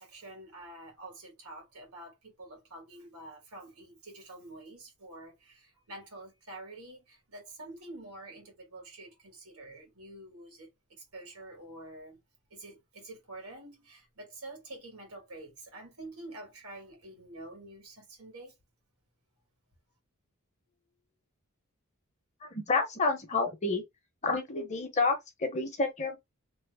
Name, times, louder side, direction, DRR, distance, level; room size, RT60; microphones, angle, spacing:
voice 1, 0.0-12.2 12.5-18.5, right 2 dB, 85° right, 1.7 m, -47 dB
voice 2, 22.4-23.8 24.2-26.2, left 3 dB, 30° left, 0.8 m, -29 dB
3.1 x 2.0 x 3.4 m
head